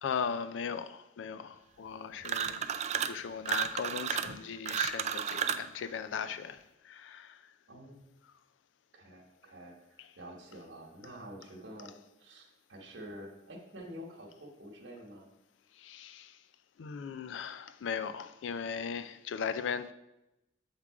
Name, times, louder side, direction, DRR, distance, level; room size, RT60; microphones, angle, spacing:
voice 1, 0.0-2.7 3.0-7.4 10.0-10.1 15.8-16.4 16.8-19.9, left 6 dB, 80° left, 0.4 m, -38 dB
sound 1, 2.2-3.2 3.5-5.7, right 8 dB, 40° right, 0.3 m, -33 dB
voice 2, 7.7-8.0 8.9-11.9 12.2-15.3, equal, 80° right, 1.2 m, -48 dB
7.2 x 3.6 x 4.7 m
head